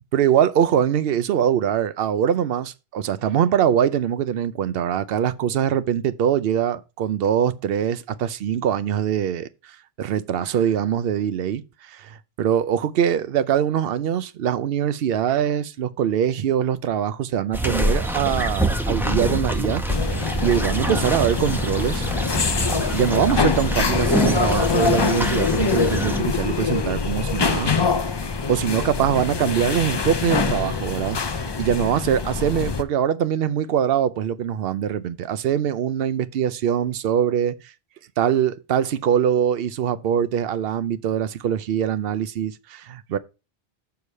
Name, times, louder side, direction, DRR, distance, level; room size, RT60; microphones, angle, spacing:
voice 1, 0.1-19.8 20.4-22.1 22.9-27.7 28.1-37.7 38.2-43.2, right 9 dB, 70° right, 0.8 m, -23 dB
sound 1, 17.5-26.2, right 1 dB, ahead, 0.7 m, -26 dB
sound 2, 19.9-32.8, left 5 dB, 35° left, 0.5 m, -24 dB
7.0 x 4.8 x 5.5 m
omnidirectional pair, 1.0 m